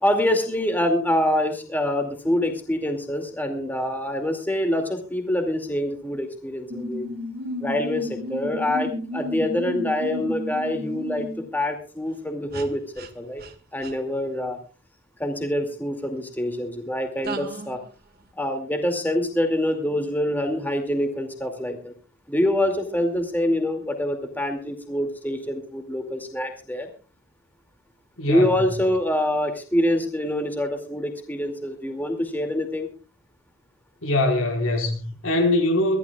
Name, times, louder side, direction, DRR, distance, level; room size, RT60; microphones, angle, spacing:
voice 1, 0.0-7.1 7.6-11.3 11.5-13.4 13.7-14.6 15.2-17.8 18.4-21.9 22.3-26.9 28.2-32.9, left 1 dB, 10° left, 2.4 m, -25 dB
sound 1, 6.7-11.5 12.5-12.7 13.0-13.1 13.4-13.5 13.8-13.9 17.3-17.8, left 1 dB, 50° right, 1.8 m, -32 dB
voice 2, 28.2-28.5 34.0-36.0, left 1 dB, 80° left, 4.7 m, -22 dB
24.0 x 15.0 x 2.4 m
head